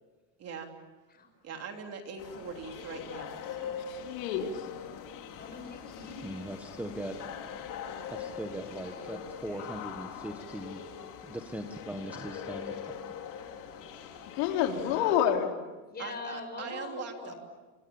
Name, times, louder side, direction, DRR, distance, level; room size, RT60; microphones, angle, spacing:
voice 1, 0.4-0.7 1.4-3.8 16.0-17.3, right 5 dB, 30° right, 4 dB, 3.3 m, -41 dB
sound 1, 2.2-15.2, left 7 dB, 40° left, 3.4 m, -42 dB
voice 2, 3.9-4.7 14.4-15.5, left 9 dB, 80° left, 3 dB, 3.8 m, -28 dB
voice 3, 5.4-6.3 7.8-8.1 8.6-9.7 14.7-17.4, left 3 dB, 20° left, 5 dB, 6.3 m, -44 dB
voice 4, 6.2-7.1 8.1-10.8 11.3-12.8 13.3-13.4, right 1 dB, 5° right, 4 dB, 1.5 m, -40 dB
29.0 x 26.5 x 7.3 m, 1.2 s
cardioid pair, 155°, 46 cm